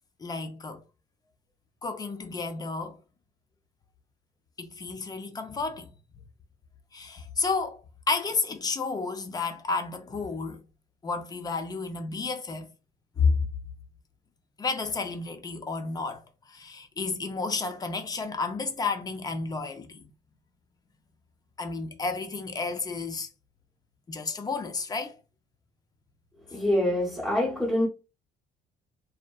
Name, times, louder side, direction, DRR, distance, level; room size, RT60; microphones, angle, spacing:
voice 1, 0.2-0.8 1.8-3.0 4.6-5.9 6.9-7.8 8.1-10.6 11.0-12.7 13.2-13.4 14.6-16.2 16.5-20.1 21.6-23.3 24.1-25.2, left 4 dB, 25° left, 0.4 m, -31 dB
voice 2, 26.5-27.9, left 1 dB, 5° left, 0.8 m, -25 dB
2.6 x 2.1 x 2.2 m
cardioid pair, 110°, 17 cm